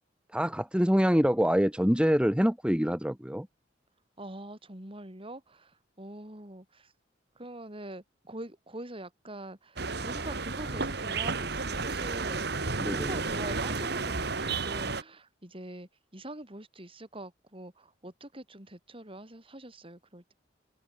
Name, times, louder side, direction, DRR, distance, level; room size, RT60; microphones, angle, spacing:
voice 1, 0.3-3.5 12.8-13.1, equal, 5° right, 1.5 m, -25 dB
voice 2, 4.2-6.9 7.3-12.6 12.9-20.3, right 1 dB, 30° right, 4.8 m, -44 dB
sound 1, 9.8-15.0, right 4 dB, 60° right, 2.5 m, -32 dB
head